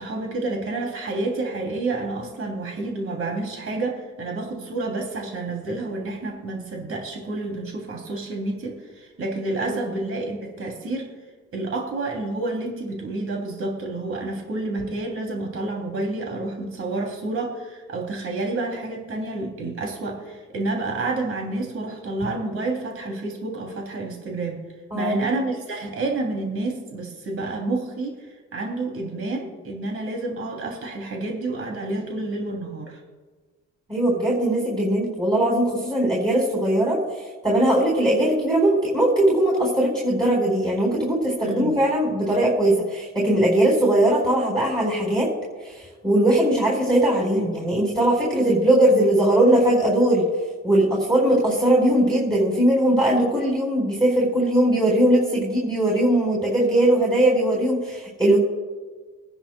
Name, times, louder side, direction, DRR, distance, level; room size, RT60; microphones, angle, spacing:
voice 1, 0.0-11.1 11.5-24.6 24.9-33.0 41.4-41.8, right 2 dB, 50° right, 0 dB, 2.9 m, -29 dB
voice 2, 33.9-45.3 45.6-50.3 50.6-58.4, right 1 dB, 15° right, -3 dB, 4.2 m, -20 dB
24.0 x 10.0 x 2.3 m, 1.4 s
cardioid pair, 90°, 30 cm